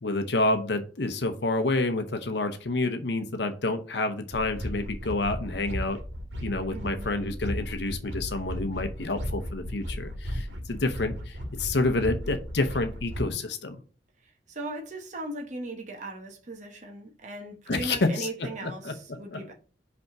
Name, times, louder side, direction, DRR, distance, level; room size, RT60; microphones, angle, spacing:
voice 1, 0.0-6.0 6.4-13.8 17.7-19.4, left 2 dB, 70° left, 0.8 m, -29 dB
sound 1, 4.3-13.3, equal, 80° right, 1.6 m, -35 dB
voice 2, 6.7-7.1 14.2-19.5, right 2 dB, 40° right, 1.1 m, -38 dB
5.3 x 3.5 x 5.8 m
head